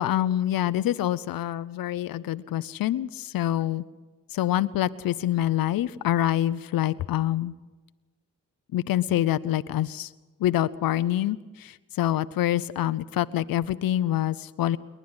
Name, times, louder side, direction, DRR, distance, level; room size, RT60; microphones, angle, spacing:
voice 1, 0.0-3.8 4.3-7.5 8.7-10.1 10.4-14.8, left 13 dB, 85° left, 14 dB, 0.6 m, -26 dB
28.5 x 11.0 x 9.7 m, 1.3 s
cardioid pair, 75°, 34 cm